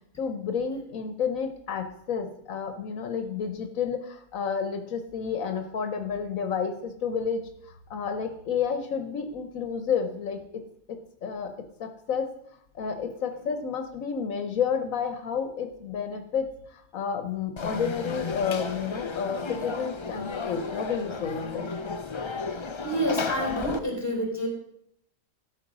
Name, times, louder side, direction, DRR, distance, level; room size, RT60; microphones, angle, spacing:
voice 1, 0.2-10.6 10.9-11.5 11.8-12.3 12.7-21.7, left 6 dB, 80° left, 7 dB, 1.3 m, -31 dB
Conversation / Crowd, 17.6-23.8, left 4 dB, 40° left, 0.4 m, -33 dB
voice 2, 22.8-24.5, equal, 10° left, -1 dB, 3.2 m, -28 dB
12.5 x 5.2 x 6.0 m, 0.73 s
omnidirectional pair, 1.4 m